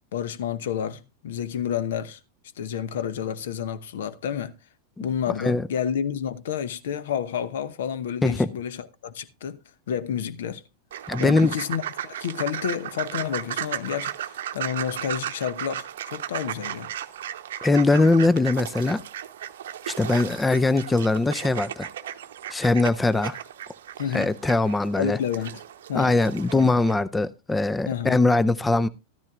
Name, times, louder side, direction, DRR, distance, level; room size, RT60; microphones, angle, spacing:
voice 1, 0.1-2.2 2.6-4.6 5.0-9.6 9.9-10.6 11.2-16.9 24.0-24.3 25.0-25.6 25.9-26.2 26.5-26.8 27.8-28.2, left 8 dB, 60° left, 0.9 m, -30 dB
sound 1, 10.9-26.9, right 10 dB, 60° right, 0.8 m, -35 dB
voice 2, 11.1-11.5 17.6-19.0 19.9-21.9 22.5-23.4 24.1-25.2 25.9-28.9, left 2 dB, 10° left, 0.5 m, -21 dB
14.0 x 13.0 x 2.4 m
figure-of-eight pair, 90°, 0 cm